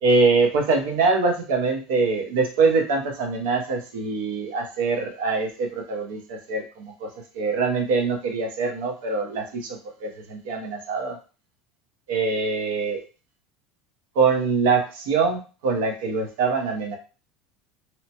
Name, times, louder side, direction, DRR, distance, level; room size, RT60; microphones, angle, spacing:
voice 1, 0.0-7.1 7.3-11.2 12.1-13.0 14.1-17.0, right 4 dB, 70° right, 3 dB, 0.7 m, -23 dB
2.8 x 2.1 x 2.8 m, 0.34 s
cardioid pair, 180°, 0 cm